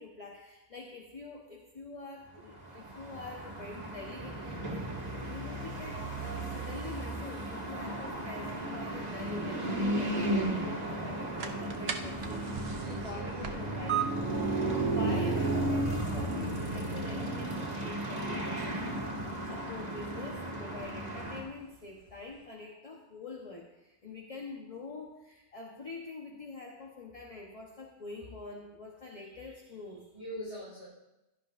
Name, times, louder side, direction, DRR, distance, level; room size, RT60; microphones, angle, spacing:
voice 1, 0.0-4.9 5.2-14.4 14.7-30.1, left 3 dB, 35° left, 0 dB, 1.2 m, -45 dB
sound 1, 2.6-21.4, right 2 dB, 40° right, 2.1 m, -34 dB
sound 2, 11.1-22.5, right 8 dB, 65° right, 1.0 m, -43 dB
voice 2, 12.7-13.4 15.1-15.3 30.1-30.9, equal, 75° left, -9 dB, 5.3 m, -43 dB
16.5 x 11.5 x 2.6 m, 0.98 s
omnidirectional pair, 1.1 m